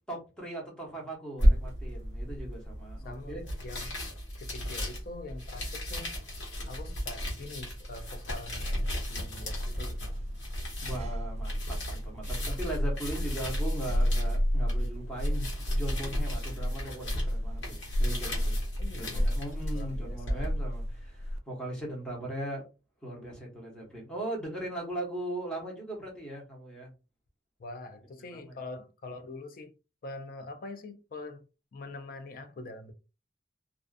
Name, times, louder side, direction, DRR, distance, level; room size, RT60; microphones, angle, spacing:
voice 1, 0.1-3.4 10.8-18.6 19.0-22.6 23.0-26.9 28.3-28.6, right 1 dB, 5° left, 1.0 m, -39 dB
sound 1, 1.4-20.5, equal, 80° left, 1.3 m, -35 dB
voice 2, 3.0-4.0 4.4-6.1 6.7-10.1 18.8-20.5 27.6-29.8 30.0-31.4 31.7-32.9, left 2 dB, 50° left, 0.4 m, -44 dB
sound 2, 8.0-21.4, equal, 35° right, 0.3 m, -32 dB
2.5 x 2.4 x 2.4 m
head